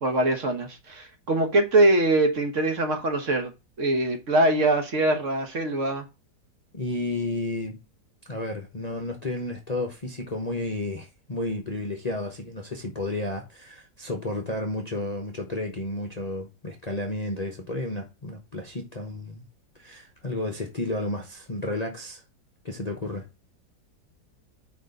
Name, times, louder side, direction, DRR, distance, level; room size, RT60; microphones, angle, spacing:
voice 1, 0.0-3.5 3.8-6.1, right 2 dB, 50° right, 1.4 m, -23 dB
voice 2, 6.7-7.8 8.3-19.4 19.8-22.2 22.6-23.2, left 2 dB, 30° left, 0.9 m, -32 dB
5.1 x 4.3 x 5.2 m
omnidirectional pair, 1.9 m